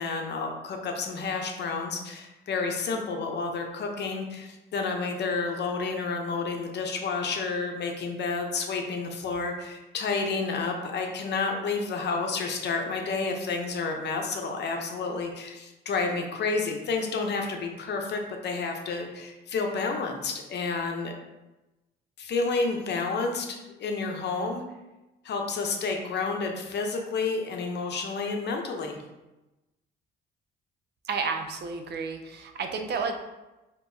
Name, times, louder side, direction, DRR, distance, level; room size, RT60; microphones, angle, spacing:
voice 1, 0.0-21.1 22.2-24.6 25.2-29.0, left 4 dB, 60° left, 2 dB, 0.7 m, -30 dB
voice 2, 31.0-33.2, right 5 dB, 55° right, 5 dB, 0.5 m, -31 dB
4.5 x 3.0 x 2.7 m, 1.0 s
cardioid pair, 90°, 20 cm